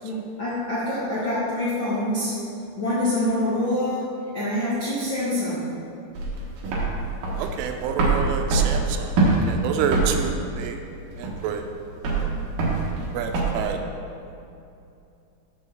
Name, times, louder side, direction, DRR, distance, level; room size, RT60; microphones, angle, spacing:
voice 1, 0.0-2.3 2.8-5.8, left 1 dB, 85° left, -10 dB, 1.0 m, -26 dB
sound 1, 6.1-13.6, right 3 dB, 65° right, 2.4 m, -24 dB
voice 2, 7.4-9.2 9.5-10.8 11.2-11.6 12.0-12.3 13.1-13.8, right 7 dB, 90° right, 5 dB, 3.2 m, -28 dB
6.7 x 6.2 x 7.2 m, 2.6 s
omnidirectional pair, 5.6 m